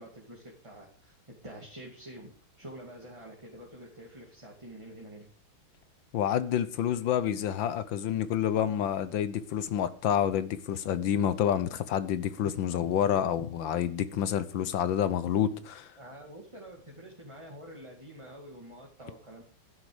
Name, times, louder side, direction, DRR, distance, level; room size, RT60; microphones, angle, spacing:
voice 1, 0.0-5.3 16.0-19.4, right 1 dB, 15° right, 2.3 m, -47 dB
voice 2, 6.1-15.9, left 9 dB, 70° left, 1.5 m, -28 dB
12.0 x 10.5 x 5.1 m
omnidirectional pair, 2.3 m